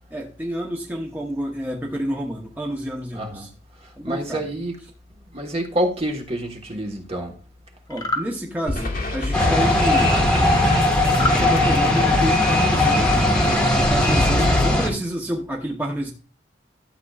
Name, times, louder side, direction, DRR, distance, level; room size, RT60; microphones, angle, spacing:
voice 1, 0.1-3.5 4.0-4.5 7.9-10.3 11.3-16.1, equal, 10° right, -2 dB, 1.0 m, -29 dB
voice 2, 3.1-3.5 4.0-4.7 5.3-7.4, right 1 dB, 35° right, 2 dB, 1.4 m, -27 dB
sound 1, 7.9-8.3 11.1-11.4, left 1 dB, 20° left, 1.2 m, -25 dB
sound 2, 8.7-14.7, left 2 dB, 55° left, 1.8 m, -27 dB
sound 3, 9.3-14.9, left 1 dB, 5° left, 1.6 m, -19 dB
12.5 x 7.7 x 2.4 m, 0.37 s
head